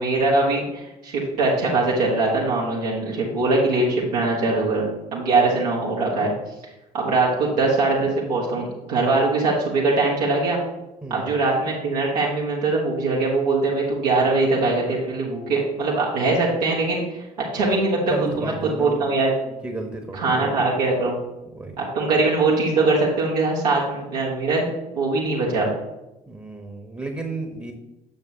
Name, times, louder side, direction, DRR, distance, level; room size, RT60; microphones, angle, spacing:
voice 1, 0.0-6.3 6.9-10.6 11.1-17.0 17.4-18.0 18.4-19.3 20.1-21.1 21.8-24.7 24.9-25.7, right 3 dB, 75° right, -4 dB, 1.6 m, -22 dB
voice 2, 11.0-11.3 17.9-19.0 19.4-20.7 21.5-21.8 26.3-27.7, right 2 dB, 15° right, 4 dB, 1.1 m, -32 dB
8.8 x 6.6 x 2.8 m, 0.94 s
figure-of-eight pair, 50°, 21 cm